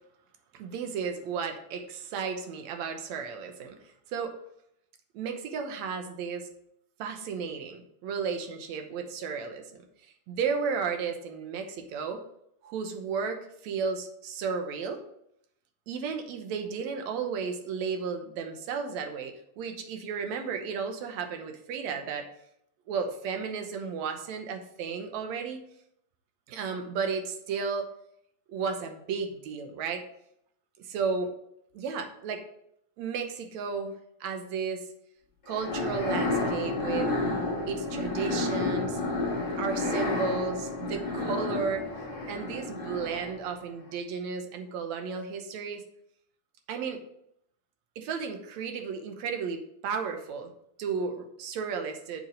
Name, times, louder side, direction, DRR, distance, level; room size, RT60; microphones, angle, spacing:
voice 1, 0.5-4.3 5.1-6.5 7.0-9.8 10.3-12.2 12.6-15.0 15.9-22.3 22.9-25.6 26.5-27.9 28.5-30.0 30.8-31.3 31.7-32.5 33.0-33.9 34.2-34.9 35.5-37.1 37.7-39.0 39.6-41.9 42.3-45.8 46.7-47.0 48.0-50.5 50.8-52.2, right 5 dB, 70° right, 6 dB, 2.0 m, -33 dB
sound 1, 35.5-43.5, left 2 dB, 50° left, 0.6 m, -31 dB
7.3 x 5.8 x 5.2 m, 0.73 s
omnidirectional pair, 3.6 m